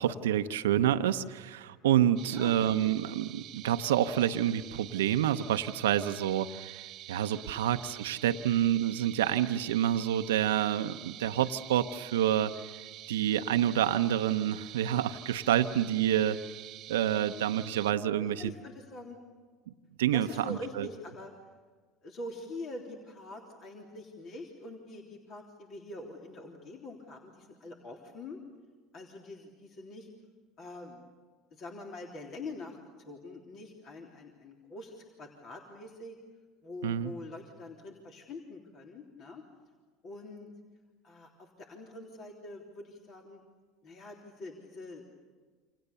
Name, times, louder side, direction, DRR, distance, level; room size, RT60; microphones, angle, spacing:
voice 1, 0.0-12.5 13.1-16.4 16.9-18.5 20.0-20.9 36.8-37.1, right 11 dB, 85° right, 9 dB, 0.8 m, -28 dB
sound 1, 2.2-17.9, right 14 dB, 55° right, 1.0 m, -47 dB
voice 2, 2.3-2.7 7.5-7.7 11.1-11.2 13.2-13.3 18.2-19.2 20.1-21.3 22.0-28.4 28.9-30.1 30.6-31.0 31.5-36.2 36.6-39.4 40.0-40.5 41.0-43.4 43.8-45.1, left 2 dB, 50° left, 1 dB, 3.5 m, -45 dB
29.0 x 27.0 x 7.0 m, 1.4 s
hypercardioid pair, 80°, 0 cm